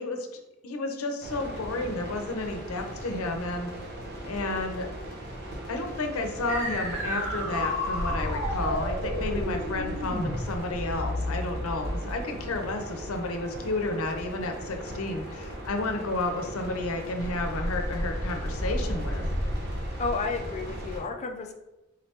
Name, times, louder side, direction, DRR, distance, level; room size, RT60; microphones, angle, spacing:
voice 1, 0.0-3.7 4.2-4.9 5.7-19.2, left 2 dB, 85° left, 4 dB, 0.6 m, -32 dB
sound 1, 1.2-21.0, equal, 55° right, 0.9 m, -35 dB
sound 2, 6.5-12.2, left 1 dB, 80° right, 1.0 m, -32 dB
voice 2, 20.0-21.5, left 4 dB, 35° left, 3 dB, 0.4 m, -31 dB
3.9 x 3.2 x 2.8 m, 0.99 s
head